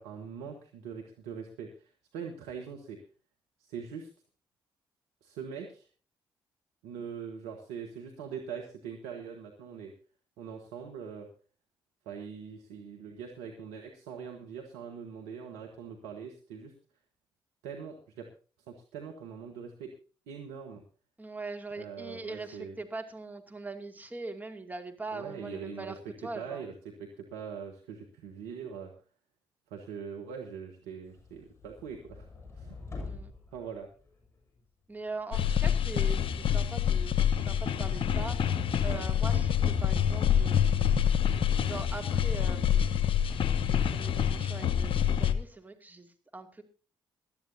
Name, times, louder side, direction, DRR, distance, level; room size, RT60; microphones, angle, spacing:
voice 1, 0.0-3.0 3.6-4.1 5.2-5.9 6.8-9.9 10.4-11.3 12.0-16.7 17.6-18.3 18.7-19.9 20.3-20.8 21.8-22.8 25.1-28.9 29.7-32.3 32.6-32.7 33.5-33.9, right 6 dB, 70° right, 2 dB, 1.4 m, -42 dB
voice 2, 21.2-25.9 26.2-26.6 33.0-33.3 34.9-38.4 38.8-40.9 41.6-43.2 43.6-46.6, right 3 dB, 15° right, 4 dB, 2.5 m, -41 dB
sound 1, 31.0-34.6 34.9-44.1, left 3 dB, 25° left, 7.3 m, -48 dB
sound 2, 35.3-45.3, left 9 dB, 55° left, 1.0 m, -27 dB
20.5 x 12.5 x 2.8 m, 0.37 s
figure-of-eight pair, 40°, 11 cm